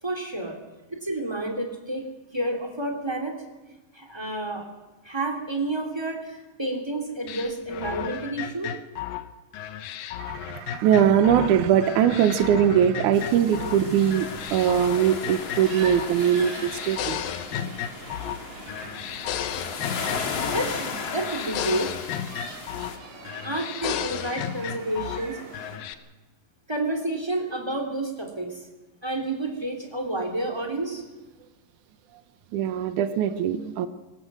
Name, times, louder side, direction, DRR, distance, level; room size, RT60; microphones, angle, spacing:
voice 1, 0.0-0.6 0.9-2.1 2.3-3.4 3.9-4.7 5.0-8.7 20.5-21.9 23.4-25.4 25.7-25.8 26.7-28.7 29.0-31.0, right 2 dB, 10° right, 4 dB, 2.6 m, -30 dB
sound 1, 7.3-11.5 11.8-13.8 14.1-16.1 16.4-18.4 18.7-20.7 21.0-23.0 23.3-25.2 25.5-25.9, left 10 dB, 80° left, 2.7 m, -34 dB
voice 2, 10.2-17.2 32.5-33.9, right 9 dB, 70° right, 8 dB, 2.2 m, -21 dB
sound 2, 13.1-23.0, left 5 dB, 50° left, 2.8 m, -36 dB
sound 3, 15.6-25.8, right 3 dB, 55° right, 5.0 m, -42 dB
23.5 x 19.0 x 6.3 m, 1.1 s
omnidirectional pair, 4.0 m